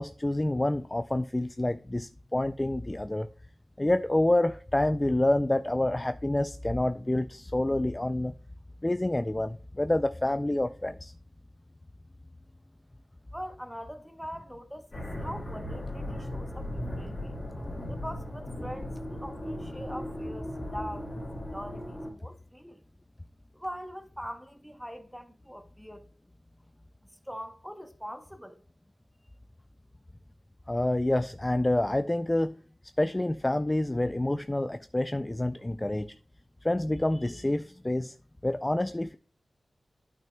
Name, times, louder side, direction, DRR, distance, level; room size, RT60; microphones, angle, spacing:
voice 1, 0.0-3.3 3.8-8.3 8.8-11.1 30.7-32.6 33.0-36.1 36.6-38.1 38.4-39.2, left 1 dB, 20° left, 0.3 m, -28 dB
voice 2, 13.3-17.4 17.9-21.2 21.5-22.8 23.5-26.1 27.3-28.6, equal, ahead, 0.9 m, -42 dB
sound 1, 14.9-22.1, left 1 dB, 35° left, 2.5 m, -37 dB
12.0 x 5.9 x 2.2 m
wide cardioid pair, 100°, 0 cm